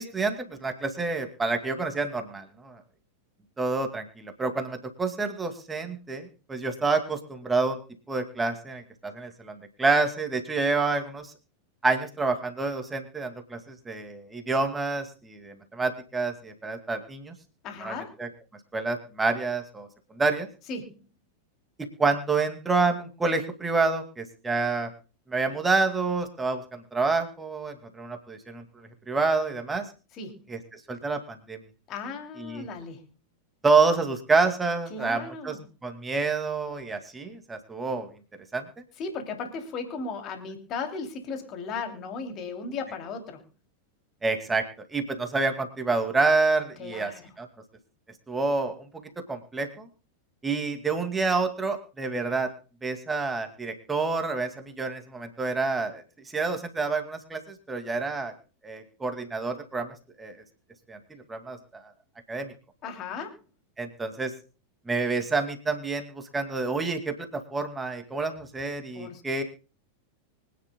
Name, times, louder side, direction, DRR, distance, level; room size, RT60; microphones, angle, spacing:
voice 1, 0.0-2.8 3.6-7.8 8.1-11.3 11.8-17.4 17.8-18.3 18.7-20.5 22.0-24.9 25.3-29.9 30.5-31.6 32.4-32.6 33.6-35.6 35.8-38.1 38.5-38.7 44.2-44.6 44.9-47.1 47.4-47.5 48.3-49.9 50.4-52.5 52.8-56.0 56.3-58.3 58.6-60.4 60.9-61.8 62.3-62.5 63.8-64.3 64.9-69.4, right 3 dB, 10° right, 6 dB, 2.3 m, -28 dB
voice 2, 17.6-18.2 20.7-21.0 30.1-30.4 31.9-33.0 34.9-35.6 39.0-43.4 46.8-47.3 62.8-63.4 68.9-69.2, left 4 dB, 35° left, 4 dB, 2.9 m, -36 dB
24.5 x 10.0 x 2.3 m, 0.34 s
figure-of-eight pair, 90°, 0 cm